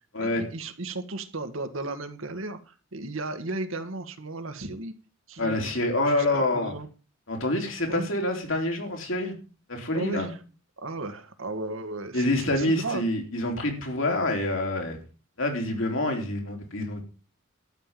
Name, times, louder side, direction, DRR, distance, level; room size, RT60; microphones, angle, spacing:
voice 1, 0.2-4.9 5.3-5.7 6.1-6.9 7.9-8.1 9.9-10.4 10.8-13.0, right 2 dB, 70° right, 8 dB, 1.6 m, -35 dB
voice 2, 5.4-6.7 7.3-9.4 9.7-10.3 12.1-15.0 15.4-17.0, left 1 dB, 65° left, 2 dB, 3.6 m, -27 dB
12.5 x 5.6 x 9.0 m, 0.37 s
head